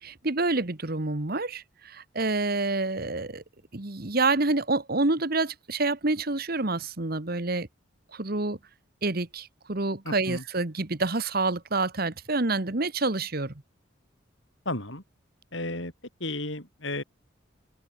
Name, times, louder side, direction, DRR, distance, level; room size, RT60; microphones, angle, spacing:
voice 1, 0.0-3.4 3.7-7.7 8.1-8.6 9.0-13.5, right 3 dB, 45° right, 1.5 m, -28 dB
voice 2, 10.0-10.4 14.6-15.0 15.5-15.9 16.2-17.0, left 2 dB, 65° left, 7.5 m, -33 dB
open air
head